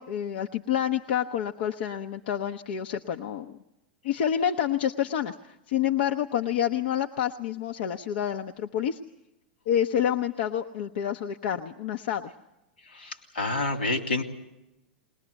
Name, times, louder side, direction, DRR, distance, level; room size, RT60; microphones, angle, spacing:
voice 1, 0.0-3.5 4.0-9.0 9.7-12.3, left 9 dB, 65° left, 6 dB, 0.9 m, -28 dB
voice 2, 12.9-14.2, left 2 dB, 85° left, 5 dB, 3.1 m, -28 dB
21.5 x 19.5 x 8.2 m, 0.92 s
hypercardioid pair, 100°, 6 cm